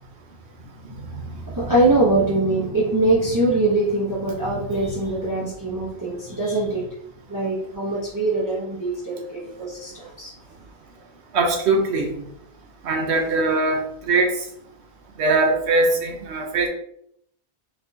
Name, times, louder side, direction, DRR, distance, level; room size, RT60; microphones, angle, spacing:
voice 1, 0.8-6.8 7.3-10.3, right 2 dB, 20° right, -7 dB, 0.8 m, -23 dB
voice 2, 11.3-12.1 12.8-13.8 14.1-14.3 15.2-16.7, right 3 dB, 90° right, 3 dB, 1.1 m, -20 dB
4.2 x 3.3 x 2.8 m, 0.71 s
omnidirectional pair, 1.1 m